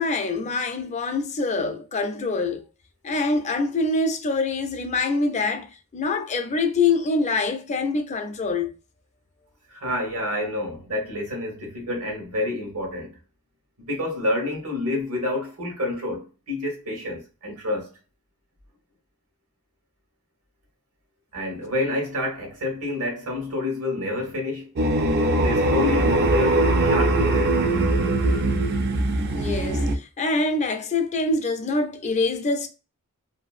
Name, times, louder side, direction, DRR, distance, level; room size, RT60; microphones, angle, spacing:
voice 1, 0.0-2.6 3.0-8.7 29.3-32.7, left 3 dB, 30° left, 0.4 m, -25 dB
voice 2, 9.7-13.2 13.8-17.9 21.3-24.7 25.3-27.6, left 2 dB, 80° right, 1.1 m, -28 dB
sound 1, 24.8-30.0, right 2 dB, 45° right, 0.4 m, -21 dB
2.6 x 2.5 x 2.4 m
head